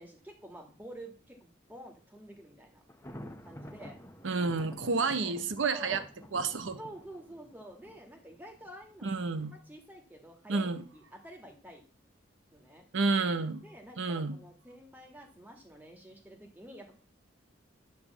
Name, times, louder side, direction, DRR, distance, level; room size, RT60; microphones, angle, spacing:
voice 1, 0.0-2.8 3.4-4.0 4.8-4.9 5.2-5.3 5.7-6.1 6.8-9.1 9.5-11.9 12.5-12.9 13.6-16.9, right 1 dB, 10° right, 2 dB, 1.7 m, -49 dB
Thunder, 2.9-8.7, equal, 15° left, 0.9 m, -49 dB
voice 2, 4.2-6.0 6.3-6.8 9.0-9.5 10.5-10.8 12.9-13.6 14.0-14.4, right 4 dB, 85° right, 10 dB, 0.8 m, -30 dB
10.5 x 3.5 x 7.1 m, 0.39 s
head